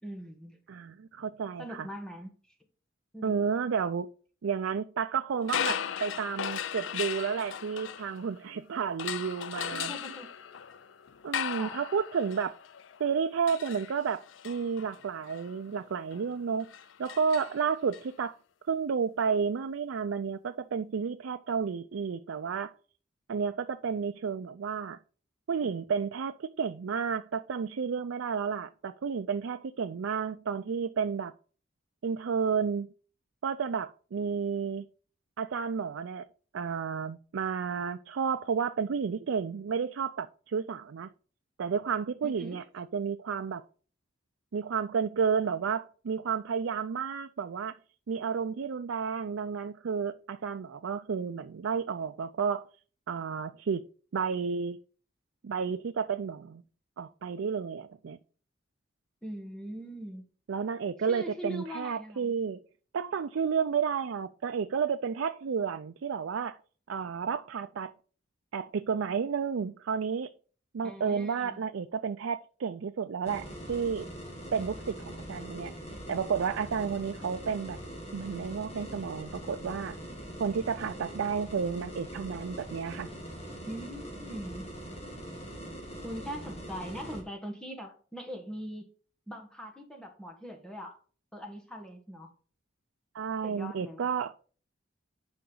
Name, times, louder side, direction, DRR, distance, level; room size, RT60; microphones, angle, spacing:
voice 1, 0.0-0.6 1.6-2.3 3.1-3.4 9.7-10.3 11.6-11.8 42.2-42.6 59.2-60.2 61.0-62.3 70.8-71.6 83.7-84.7 86.0-88.9 89.3-91.0 91.3-92.3 93.4-94.0, equal, 5° left, 1.5 m, -41 dB
voice 2, 0.7-1.9 3.2-4.1 4.4-9.9 11.2-12.6 13.0-16.7 17.0-18.4 18.7-22.7 23.3-25.0 25.5-31.3 32.0-32.9 33.4-34.9 35.4-36.2 36.5-41.1 41.6-43.6 44.5-47.8 48.1-52.6 53.1-53.9 54.1-54.8 55.4-56.6 57.0-58.2 60.5-62.6 62.9-66.6 66.9-67.9 68.5-70.3 70.7-74.1 74.5-75.7 76.1-77.8 78.1-80.0 80.4-83.1 93.1-94.4, right 6 dB, 90° right, 0.4 m, -31 dB
sound 1, 5.4-8.5 9.0-18.0, left 8 dB, 75° left, 0.4 m, -38 dB
sound 2, 73.2-87.2, equal, 30° left, 2.1 m, -42 dB
9.6 x 5.1 x 3.8 m
head